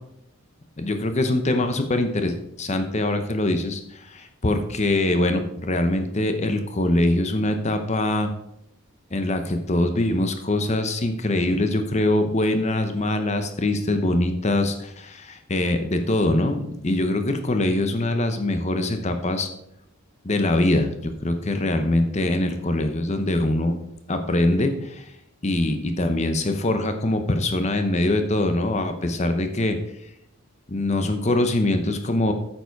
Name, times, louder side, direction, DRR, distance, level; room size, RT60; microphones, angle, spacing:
voice 1, 0.8-8.3 9.1-19.5 20.2-23.8 24.1-25.1 25.4-29.8 30.7-32.3, left 1 dB, 30° left, 7 dB, 0.8 m, -23 dB
9.1 x 7.0 x 4.6 m, 0.80 s
head